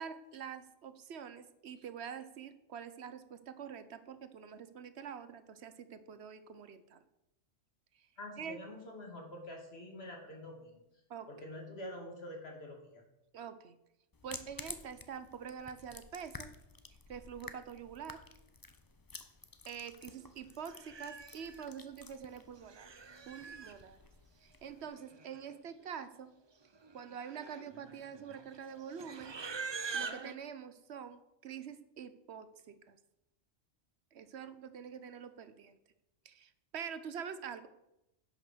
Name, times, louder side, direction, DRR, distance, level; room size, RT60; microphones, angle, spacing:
voice 1, 0.0-7.0 8.4-8.6 11.1-11.3 13.3-13.8 14.2-16.5 17.1-18.2 19.6-22.9 23.3-24.0 24.4-26.3 26.9-29.4 29.9-33.0 34.1-35.8 36.2-37.7, right 7 dB, 60° right, 12 dB, 1.0 m, -46 dB
voice 2, 8.2-10.8 11.3-13.0, left 1 dB, 50° left, 1 dB, 2.7 m, -46 dB
sound 1, 14.1-24.9, left 3 dB, 25° left, 0.5 m, -52 dB
Livestock farm animals working animals, 20.1-20.3 20.7-21.6 22.5-23.8 24.8-24.9 25.1-25.5 25.8-26.1 26.8-30.3, right 5 dB, 40° right, 0.4 m, -44 dB
10.5 x 6.3 x 6.7 m, 0.88 s
omnidirectional pair, 1.3 m